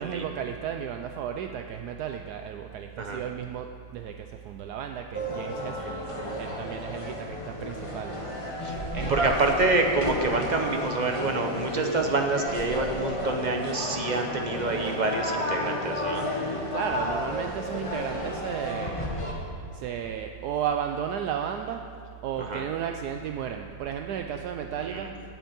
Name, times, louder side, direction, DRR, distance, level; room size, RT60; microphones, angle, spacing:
voice 1, 0.0-6.1 6.4-8.2 8.9-9.6 16.7-19.1 19.7-21.9 22.2-25.2, right 8 dB, 75° right, 5 dB, 1.1 m, -34 dB
sound 1, 5.1-19.3, left 1 dB, 20° left, 1.3 m, -32 dB
voice 2, 9.1-16.3 22.5-22.6 24.8-25.1, right 3 dB, 35° right, 3 dB, 0.8 m, -27 dB
9.1 x 8.1 x 8.7 m, 2.7 s
omnidirectional pair, 1.8 m